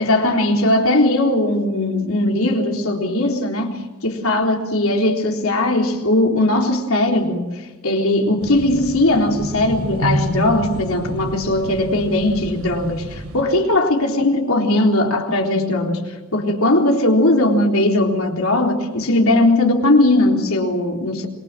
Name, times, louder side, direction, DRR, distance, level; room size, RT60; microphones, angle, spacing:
voice 1, 0.0-7.5 7.8-16.0 16.3-21.3, left 1 dB, 75° left, 3.9 m, -18 dB
sound 1, 8.4-13.4, equal, 80° right, 6.4 m, -28 dB
27.0 x 23.5 x 7.6 m
head